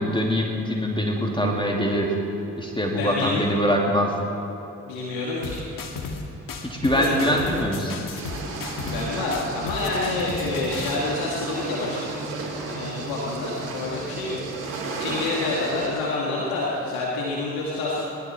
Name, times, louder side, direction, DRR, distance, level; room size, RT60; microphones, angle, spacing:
voice 1, 0.0-2.1 2.6-4.2 6.6-8.0, equal, 15° left, 0 dB, 2.4 m, -23 dB
sound 1, 1.4-5.0, right 8 dB, 55° right, 0.9 m, -38 dB
voice 2, 3.0-3.4 4.9-5.6 6.7-7.5 8.8-12.2 12.6-14.4 15.0-18.0, left 3 dB, 85° left, -4 dB, 2.0 m, -28 dB
sound 2, 5.4-6.2 6.5-9.0 9.3-11.0, left 4 dB, 65° left, 1.7 m, -34 dB
sound 3, 8.1-15.9, right 3 dB, 75° right, 2.7 m, -33 dB
20.0 x 11.5 x 4.3 m, 2.8 s
hypercardioid pair, 45°, 35 cm